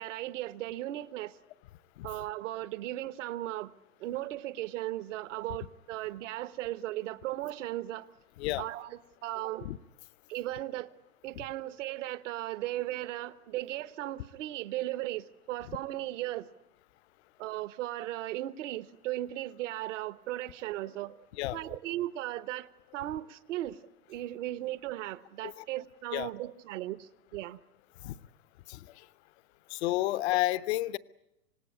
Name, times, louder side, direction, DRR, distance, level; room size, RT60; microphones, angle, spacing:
voice 1, 0.0-1.4 2.0-3.7 4.0-8.1 8.6-9.7 10.3-11.0 11.2-16.5 17.4-21.3 21.5-23.8 24.1-27.6, right 15 dB, 50° right, 1.1 m, -37 dB
voice 2, 28.7-29.1 29.7-31.0, left 17 dB, 45° left, 0.8 m, -31 dB
26.0 x 19.0 x 10.0 m
hypercardioid pair, 120°, 46 cm